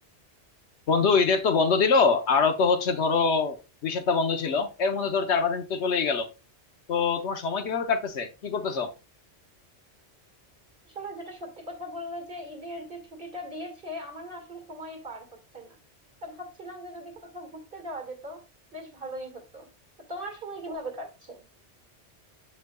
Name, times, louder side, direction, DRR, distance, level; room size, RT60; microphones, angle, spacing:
voice 1, 0.9-3.6 3.8-6.3 6.9-8.9, left 5 dB, 75° left, 1.2 m, -24 dB
voice 2, 10.8-15.8 16.2-18.4 18.7-19.7 20.1-21.4, equal, 50° right, 2.1 m, -39 dB
7.8 x 5.6 x 2.3 m
omnidirectional pair, 1.2 m